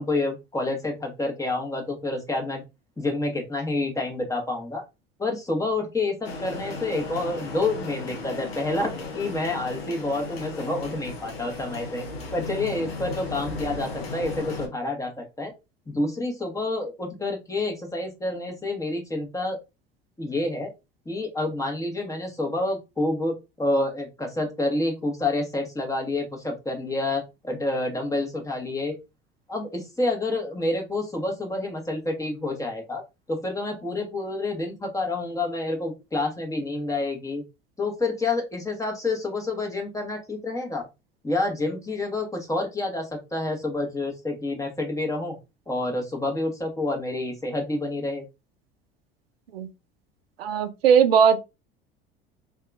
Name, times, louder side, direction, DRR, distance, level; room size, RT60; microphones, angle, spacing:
voice 1, 0.0-2.6 3.0-4.8 5.2-12.0 12.3-15.5 15.9-19.6 20.2-20.7 21.1-28.9 29.5-33.0 33.3-37.4 37.8-40.9 41.2-45.4 45.7-48.2, left 2 dB, 10° left, 1.0 m, -28 dB
sound 1, 6.2-14.7, left 3 dB, 90° left, 0.8 m, -35 dB
voice 2, 50.4-51.4, right 7 dB, 85° right, 0.5 m, -18 dB
2.7 x 2.3 x 2.4 m
hypercardioid pair, 75°, 29 cm